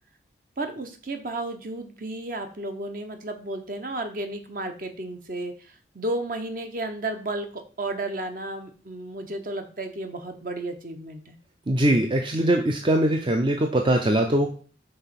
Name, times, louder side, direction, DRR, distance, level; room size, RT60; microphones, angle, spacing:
voice 1, 0.6-11.4, right 2 dB, 50° right, 6 dB, 1.0 m, -33 dB
voice 2, 11.7-14.5, right 1 dB, 25° right, 3 dB, 0.5 m, -22 dB
5.5 x 3.9 x 5.8 m, 0.42 s
head